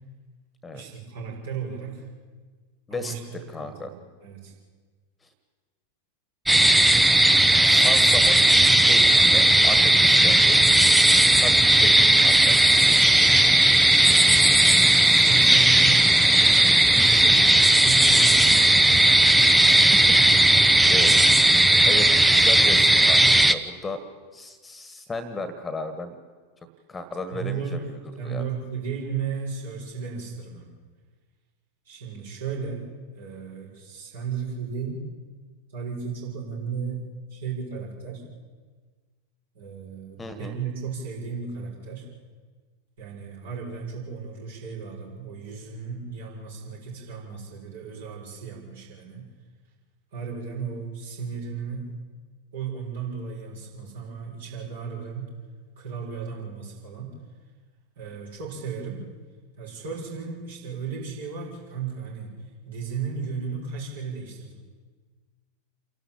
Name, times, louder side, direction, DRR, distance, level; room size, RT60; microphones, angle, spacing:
voice 1, 0.7-2.1 2.9-3.2 3.6-3.9 4.2-4.5 13.1-13.6 14.8-19.2 27.3-27.9 28.2-30.7 31.9-32.8 33.1-35.0 35.7-38.2 39.5-42.1 43.0-49.3 50.1-51.9 52.5-55.3 55.8-57.1 58.0-59.0 59.6-62.3 62.6-64.6, right 5 dB, 60° right, -2 dB, 6.4 m, -35 dB
voice 2, 2.9-3.9 7.7-8.4 8.8-10.6 11.4-12.6 19.9-20.0 20.3-20.6 20.9-21.2 21.9-24.0 24.3-26.2 26.9-27.8 28.2-28.4 40.2-40.6, left 2 dB, 10° left, 11 dB, 1.8 m, -34 dB
sound 1, 6.5-23.5, right 1 dB, 5° right, 0.8 m, -17 dB
28.5 x 12.0 x 8.9 m, 1.5 s
figure-of-eight pair, 90°, 0 cm